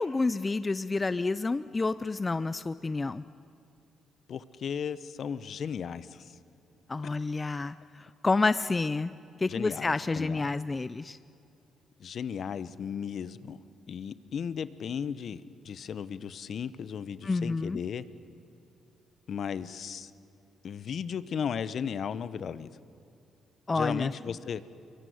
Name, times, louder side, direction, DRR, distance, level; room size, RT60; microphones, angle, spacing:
voice 1, 0.0-3.2 6.9-9.1 9.4-11.2 17.2-17.8 23.7-24.1, left 3 dB, 25° left, 15 dB, 0.5 m, -29 dB
voice 2, 4.3-6.3 9.5-10.5 12.0-13.6 13.9-18.0 19.3-20.1 20.6-22.7 23.7-24.6, left 7 dB, 55° left, 15 dB, 0.9 m, -35 dB
23.0 x 23.0 x 9.4 m, 2.6 s
cardioid pair, 90°, 0 cm